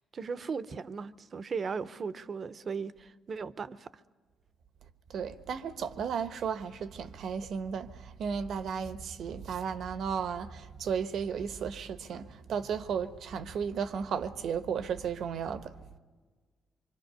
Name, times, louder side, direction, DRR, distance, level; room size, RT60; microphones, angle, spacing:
voice 1, 0.1-3.9, right 5 dB, 45° right, 0.8 m, -37 dB
voice 2, 5.1-15.8, right 6 dB, 70° right, 1.1 m, -34 dB
25.0 x 24.0 x 6.8 m
cardioid pair, 90°, 0 cm